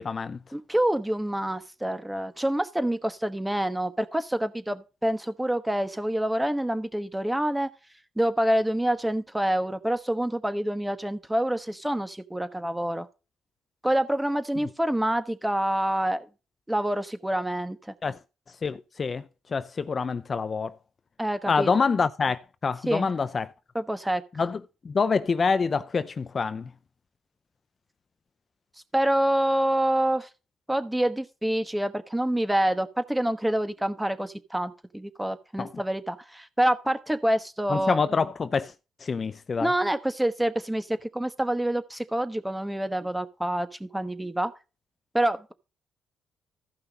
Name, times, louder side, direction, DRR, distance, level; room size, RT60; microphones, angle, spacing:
voice 1, 0.0-0.4 18.0-18.2 18.6-19.2 19.5-20.7 21.5-23.5 24.4-24.6 24.8-26.7 35.6-35.7 37.7-38.7 39.0-39.7, left 5 dB, 40° left, 0.5 m, -26 dB
voice 2, 0.5-7.7 8.2-13.1 13.8-16.3 16.7-17.9 21.2-21.7 22.9-23.1 23.7-24.2 28.9-30.3 30.7-38.0 39.6-44.5 45.1-45.5, right 1 dB, 5° right, 1.2 m, -27 dB
14.5 x 5.7 x 4.0 m
cardioid pair, 90°, 0 cm